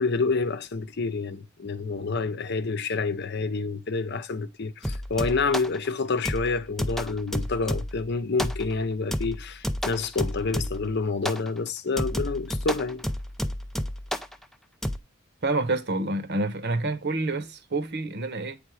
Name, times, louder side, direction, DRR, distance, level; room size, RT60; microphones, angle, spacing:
voice 1, 0.0-13.0, left 4 dB, 60° left, 0.7 m, -28 dB
sound 1, 4.8-5.8 6.3-8.1 8.4-8.8 9.1-10.9 11.3-11.5 12.0-14.3 14.8-15.0, equal, ahead, 0.5 m, -31 dB
voice 2, 15.4-18.6, right 2 dB, 60° right, 1.1 m, -28 dB
8.6 x 3.5 x 4.7 m
head